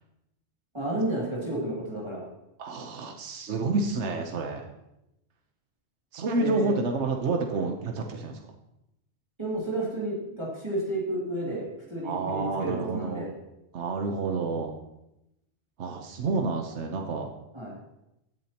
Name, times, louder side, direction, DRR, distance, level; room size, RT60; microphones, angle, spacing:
voice 1, 0.7-2.2 6.4-6.7 9.4-13.3 17.5-17.8, right 1 dB, 25° right, -7 dB, 2.7 m, -31 dB
voice 2, 2.6-4.6 6.1-8.5 12.0-13.3 13.7-14.8 15.8-17.3, right 3 dB, 80° right, 3 dB, 1.2 m, -29 dB
16.5 x 8.4 x 2.9 m, 0.88 s
omnidirectional pair, 1.2 m